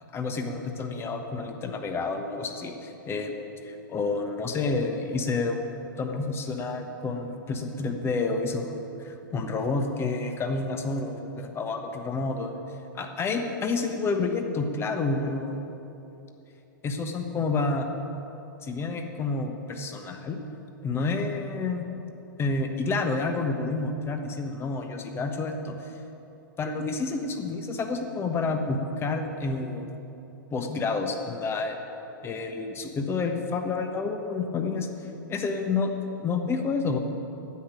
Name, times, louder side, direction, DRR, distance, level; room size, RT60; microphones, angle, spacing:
voice 1, 0.1-3.3 3.6-5.7 6.0-12.6 12.9-15.6 16.8-17.8 18.6-20.4 20.8-21.9 22.4-25.8 26.6-30.0 30.5-31.8 32.2-34.9 35.3-35.9 36.2-37.0, left 3 dB, 20° left, 5 dB, 1.3 m, -29 dB
9.9 x 8.2 x 9.1 m, 3.0 s
hypercardioid pair, 115°, 11 cm